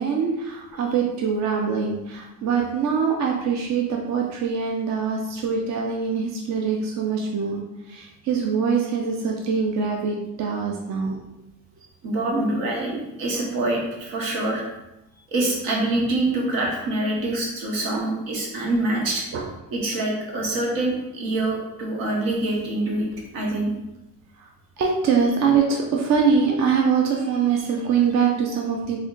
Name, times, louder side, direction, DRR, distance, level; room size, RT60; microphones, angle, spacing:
voice 1, 0.0-11.2 19.3-19.5 24.4-24.5 24.8-29.0, right 6 dB, 55° right, 0 dB, 0.6 m, -23 dB
voice 2, 12.0-14.6 15.3-19.2 19.7-23.1 23.3-23.7, right 2 dB, 85° right, -1 dB, 1.1 m, -25 dB
3.6 x 2.2 x 3.7 m, 0.93 s
cardioid pair, 95°, 34 cm